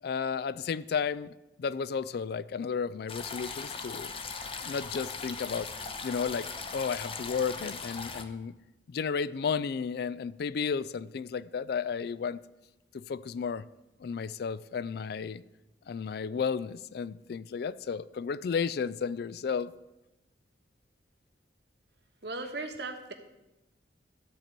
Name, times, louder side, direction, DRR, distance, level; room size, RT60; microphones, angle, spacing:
voice 1, 0.0-4.1 4.6-5.7 6.0-8.5 8.9-12.4 12.9-13.7 14.0-15.4 15.9-19.7, left 6 dB, 60° left, 0.3 m, -33 dB
sound 1, 3.1-8.2, left 5 dB, 30° left, 0.7 m, -39 dB
voice 2, 22.2-23.1, right 3 dB, 65° right, 1.4 m, -37 dB
13.5 x 4.5 x 8.3 m
head